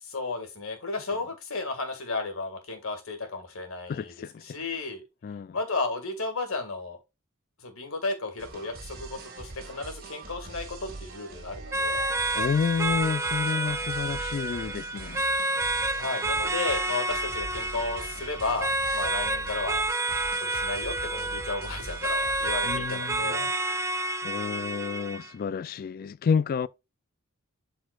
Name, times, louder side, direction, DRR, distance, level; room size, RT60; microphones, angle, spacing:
voice 1, 0.0-4.1 4.4-5.0 5.5-7.0 7.6-12.1 15.9-19.8 20.4-23.5, left 3 dB, 65° left, 2.0 m, -33 dB
voice 2, 3.9-4.4 5.2-5.6 12.4-15.2 22.6-23.5 24.2-26.7, left 6 dB, 45° left, 0.3 m, -30 dB
sound 1, 8.4-23.2, right 3 dB, 45° right, 2.1 m, -43 dB
sound 2, 11.7-25.3, right 2 dB, 15° right, 0.5 m, -29 dB
12.0 x 4.2 x 2.4 m
head